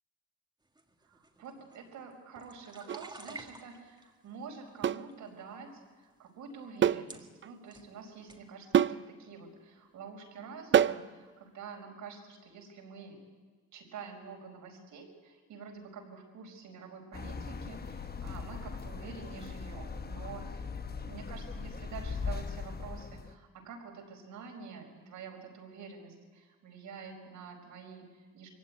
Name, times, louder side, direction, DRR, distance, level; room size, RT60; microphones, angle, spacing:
sound 1, 0.8-4.1 4.7-5.3 6.0-6.1 6.8-6.9 7.1-7.9 8.3-8.4, right 2 dB, 15° right, 2.1 m, -51 dB
voice 1, 1.0-13.2 13.7-20.7 21.1-28.5, right 5 dB, 80° right, 2 dB, 4.9 m, -47 dB
sound 2, 2.9-3.1 4.8-5.1 6.8-7.1 7.4-7.5 8.7-9.0 10.7-11.1, right 9 dB, 40° right, 0.6 m, -25 dB
sound 3, 17.1-23.3, left 5 dB, 30° left, 1.1 m, -40 dB
23.0 x 15.5 x 9.5 m, 1.5 s
cardioid pair, 90°, 30 cm